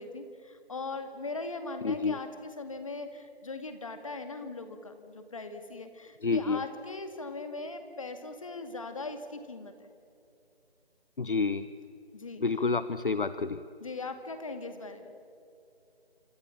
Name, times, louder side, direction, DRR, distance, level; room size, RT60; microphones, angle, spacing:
voice 1, 0.0-9.9 12.1-12.4 13.8-15.2, left 3 dB, 30° left, 8 dB, 2.2 m, -40 dB
voice 2, 1.8-2.2 6.2-6.6 11.2-11.7 12.4-13.6, left 4 dB, 55° left, 13 dB, 0.9 m, -28 dB
27.5 x 27.0 x 7.2 m, 2.6 s
figure-of-eight pair, 170°, 32 cm